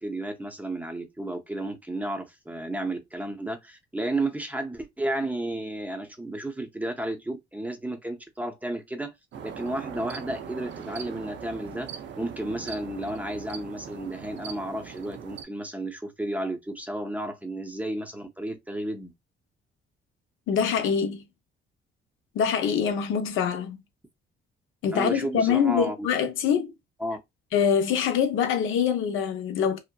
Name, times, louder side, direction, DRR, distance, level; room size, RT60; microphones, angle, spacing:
voice 1, 0.0-9.1 9.4-11.9 12.2-19.1 24.9-26.1 27.0-27.2, right 1 dB, 5° right, 0.5 m, -32 dB
sound 1, 9.3-15.4, right 7 dB, 65° right, 0.5 m, -40 dB
voice 2, 20.5-21.2 22.3-23.8 24.8-26.7 27.5-29.8, left 7 dB, 80° left, 0.6 m, -24 dB
2.8 x 2.1 x 2.2 m
cardioid pair, 90°, 20 cm